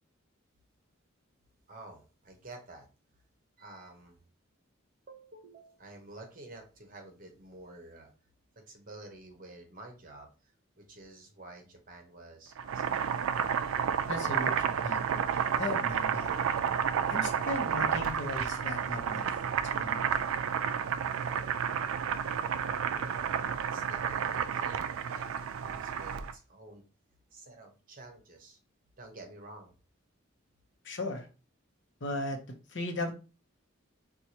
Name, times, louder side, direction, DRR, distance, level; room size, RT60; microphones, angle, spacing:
voice 1, 1.7-2.9 3.6-4.2 5.1-8.1 8.7-13.1 13.6-13.9 22.9-23.2 23.5-26.8 27.3-28.6 29.0-29.7, right 2 dB, 40° right, 3 dB, 0.8 m, -50 dB
Boiling, 12.5-26.3, right 7 dB, 80° right, 0.3 m, -31 dB
voice 2, 14.1-16.3 16.6-16.7 17.1-19.3 19.6-20.1 30.8-31.3 32.0-32.4 32.7-33.1, left 2 dB, 60° left, 3 dB, 0.8 m, -37 dB
4.5 x 2.3 x 2.8 m, 0.33 s
head